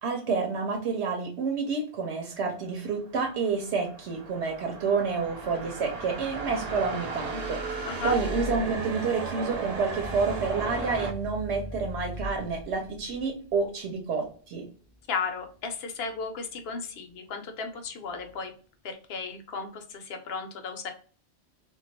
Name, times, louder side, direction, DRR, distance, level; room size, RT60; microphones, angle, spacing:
voice 1, 0.0-14.7, right 4 dB, 85° right, 3 dB, 0.9 m, -29 dB
sound 1, 3.2-11.1, right 3 dB, 50° right, 0.5 m, -35 dB
voice 2, 7.8-8.1 15.1-18.5 18.8-20.9, left 5 dB, 70° left, 6 dB, 0.8 m, -35 dB
sound 2, 10.0-17.3 17.7-18.4, equal, 30° right, 0.8 m, -42 dB
2.3 x 2.2 x 3.9 m, 0.41 s
omnidirectional pair, 1.1 m